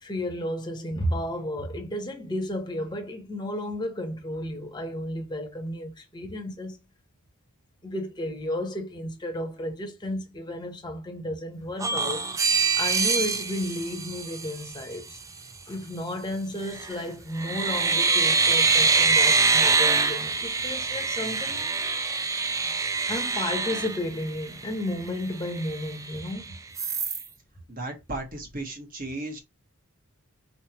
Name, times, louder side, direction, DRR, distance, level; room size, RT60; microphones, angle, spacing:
voice 1, 0.0-6.8 7.8-12.3 12.7-15.2 15.7-21.6 23.1-26.6, left 1 dB, 20° left, 0.9 m, -33 dB
sound 1, 11.8-14.8 16.6-17.0 17.4-24.6 25.1-25.2 25.4-26.3 26.8-27.2, right 4 dB, 15° right, 0.3 m, -24 dB
voice 2, 27.7-29.4, right 2 dB, 40° right, 1.3 m, -35 dB
4.1 x 3.4 x 2.9 m
head